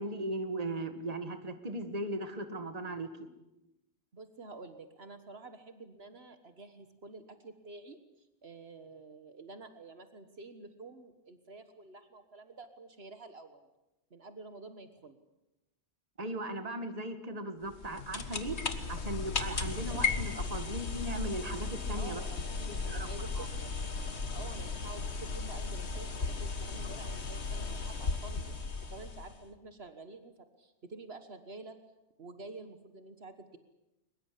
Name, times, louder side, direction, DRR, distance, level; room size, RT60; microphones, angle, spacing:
voice 1, 0.0-3.1 16.2-18.6 18.9-22.2 22.6-23.1 23.4-23.5, right 1 dB, 35° right, 8 dB, 1.9 m, -38 dB
voice 2, 4.1-13.7 14.1-15.2 21.9-23.7 24.3-28.5 28.9-31.8 32.2-33.6, right 3 dB, 65° right, 9 dB, 1.7 m, -49 dB
sound 1, 17.7-29.5, left 4 dB, 75° left, 1.8 m, -36 dB
23.0 x 21.5 x 8.5 m, 0.95 s
omnidirectional pair, 1.1 m